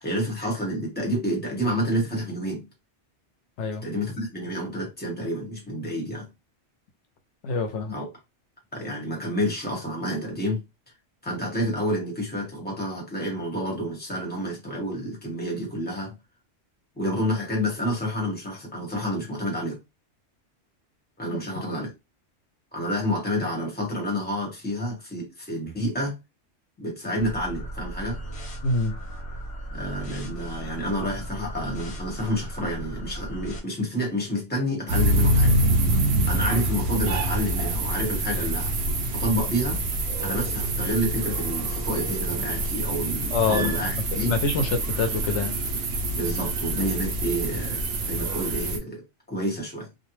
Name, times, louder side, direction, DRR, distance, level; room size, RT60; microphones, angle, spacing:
voice 1, 0.0-2.7 3.8-6.3 7.9-8.1 8.7-10.6 11.2-16.2 16.9-19.8 21.2-21.9 22.7-26.1 26.8-28.2 29.7-35.6 36.3-38.7 39.1-39.8 40.2-44.3 46.1-49.0 49.3-49.9, equal, 10° left, 1.0 m, -29 dB
voice 2, 7.4-8.0 28.6-28.9 43.3-43.7 44.2-45.6, left 3 dB, 85° left, 0.9 m, -25 dB
sound 1, 27.2-33.6, right 1 dB, 70° left, 1.1 m, -36 dB
sound 2, 34.9-48.8, right 1 dB, 70° right, 0.9 m, -26 dB
2.5 x 2.1 x 3.0 m
omnidirectional pair, 1.2 m